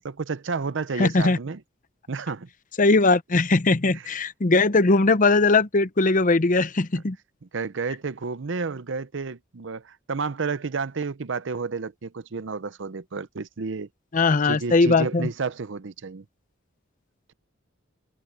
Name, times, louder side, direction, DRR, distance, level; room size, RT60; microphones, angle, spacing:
voice 1, 0.0-1.6 2.1-2.5 6.9-7.0 7.5-13.9 14.4-16.2, right 4 dB, 70° right, 0.7 m, -31 dB
voice 2, 1.0-1.4 2.8-7.2 14.1-15.3, left 3 dB, 45° left, 0.8 m, -20 dB
head